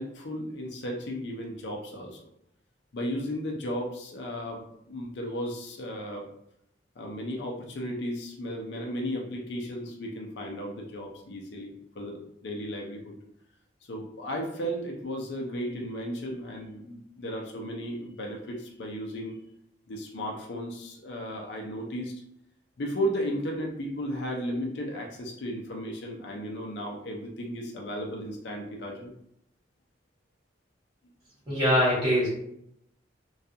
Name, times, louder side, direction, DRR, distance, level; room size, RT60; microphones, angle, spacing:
voice 1, 0.0-2.2 2.9-6.3 7.0-13.2 13.9-19.4 19.9-22.2 22.8-29.1, equal, 65° left, 0 dB, 0.5 m, -35 dB
voice 2, 31.5-32.3, equal, 25° right, -8 dB, 1.0 m, -23 dB
2.3 x 2.3 x 2.7 m, 0.76 s
head